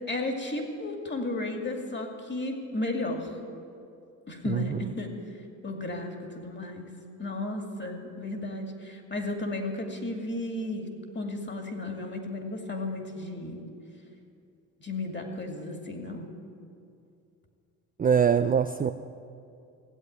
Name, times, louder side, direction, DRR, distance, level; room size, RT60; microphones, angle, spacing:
voice 1, 0.1-3.3 4.3-5.1 5.6-6.9 7.2-10.9 11.1-13.6 14.8-16.3, left 2 dB, 25° left, 4 dB, 2.4 m, -34 dB
voice 2, 4.5-4.8 18.0-18.9, right 7 dB, 20° right, 8 dB, 0.4 m, -23 dB
16.5 x 8.1 x 9.4 m, 2.5 s
supercardioid pair, 80°, 40 cm